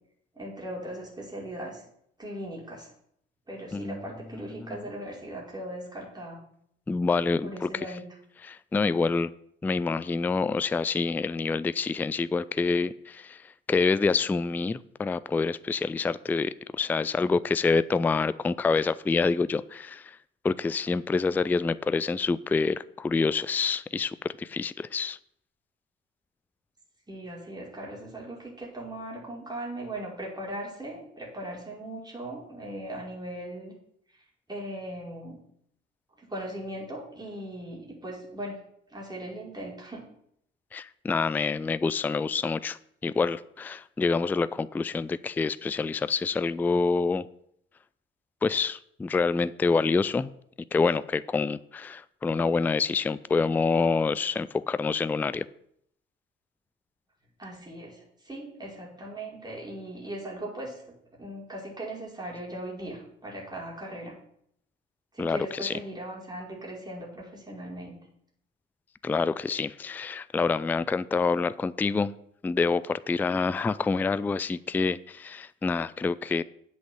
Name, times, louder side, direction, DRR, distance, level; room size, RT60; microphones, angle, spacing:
voice 1, 0.3-1.8 2.2-2.9 3.5-6.4 7.4-8.0 27.1-33.7 34.5-35.4 36.2-38.6 38.9-40.0 57.4-60.8 61.2-64.1 65.1-67.9, right 1 dB, 15° right, -4 dB, 4.9 m, -39 dB
voice 2, 6.9-7.7 8.4-9.3 9.6-13.4 13.7-20.2 20.4-25.2 40.7-47.3 48.4-50.3 50.7-55.5 65.2-65.8 69.0-72.1 72.4-76.4, left 4 dB, 5° left, 17 dB, 0.3 m, -27 dB
8.0 x 6.4 x 7.8 m, 0.70 s
figure-of-eight pair, 50°, 29 cm